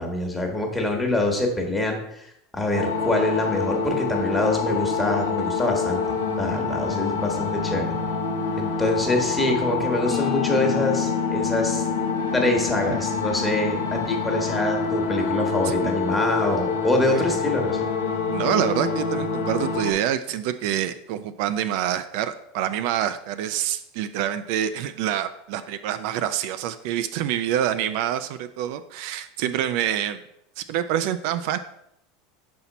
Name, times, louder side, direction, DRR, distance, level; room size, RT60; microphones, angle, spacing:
voice 1, 0.0-2.0 2.5-7.9 8.6-11.9 12.3-17.8, left 2 dB, 10° left, 1 dB, 1.3 m, -25 dB
sound 1, 2.7-19.9, left 4 dB, 90° left, 0.8 m, -26 dB
sound 2, 10.1-15.7, left 20 dB, 30° left, 0.4 m, -33 dB
voice 2, 18.3-30.2 30.6-31.6, right 10 dB, 65° right, 10 dB, 0.3 m, -26 dB
5.6 x 4.3 x 4.0 m, 0.77 s
supercardioid pair, 115°, 0 cm